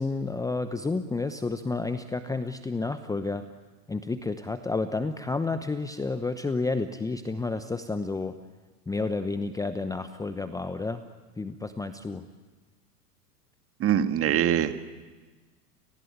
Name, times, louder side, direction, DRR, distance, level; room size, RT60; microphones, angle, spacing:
voice 1, 0.0-3.4 3.9-8.4 8.9-11.0 11.4-12.3, left 3 dB, 5° left, 10 dB, 0.8 m, -30 dB
voice 2, 13.8-14.7, right 10 dB, 30° right, 9 dB, 1.7 m, -23 dB
29.5 x 19.0 x 9.4 m, 1.3 s
hypercardioid pair, 95°, 48 cm